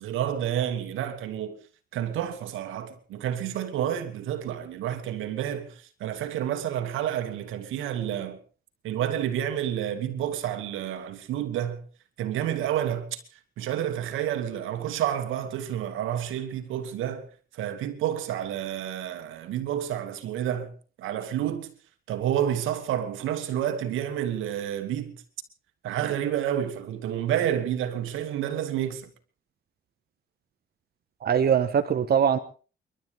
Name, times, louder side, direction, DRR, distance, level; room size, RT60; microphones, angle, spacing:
voice 1, 0.0-1.6 1.9-8.4 8.8-11.8 12.2-13.2 13.6-17.3 17.5-21.7 22.1-25.2 25.8-29.1, right 10 dB, 90° right, 2.4 m, -29 dB
voice 2, 31.2-32.4, right 8 dB, 50° right, 1.3 m, -22 dB
29.5 x 12.5 x 3.6 m
cardioid pair, 90°, 20 cm